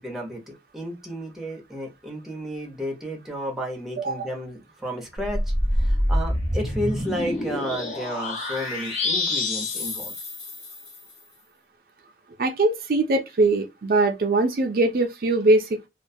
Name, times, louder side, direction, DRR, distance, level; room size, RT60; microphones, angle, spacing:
voice 1, 0.0-10.1, equal, ahead, 0.6 m, -32 dB
voice 2, 4.0-4.3 12.4-15.7, right 2 dB, 50° right, 0.4 m, -21 dB
sound 1, 5.2-11.0, left 1 dB, 40° left, 0.8 m, -26 dB
2.4 x 2.2 x 2.6 m
head